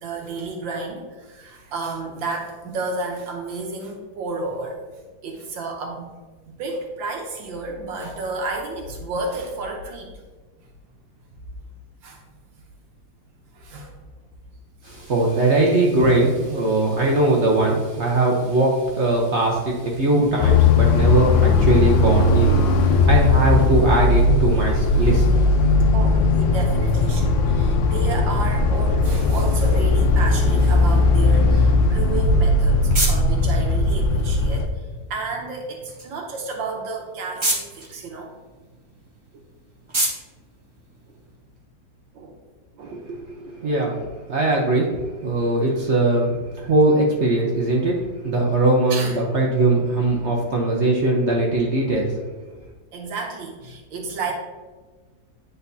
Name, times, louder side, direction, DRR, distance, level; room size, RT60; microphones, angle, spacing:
voice 1, 0.0-4.8 5.2-6.1 6.4-10.1 12.0-12.2 13.5-13.9 25.9-38.3 42.1-42.4 42.7-43.1 43.4-43.8 46.6-46.7 48.9-49.2 52.9-54.3, right 3 dB, 80° right, 1 dB, 1.6 m, -31 dB
voice 2, 14.8-25.3 42.9-52.1, right 2 dB, 50° right, -2 dB, 0.8 m, -20 dB
sound 1, 20.4-34.7, left 3 dB, 80° left, 1.3 m, -18 dB
sound 2, 32.1-41.6, right 1 dB, 25° right, 0.6 m, -32 dB
10.0 x 4.0 x 2.7 m, 1.3 s
omnidirectional pair, 2.1 m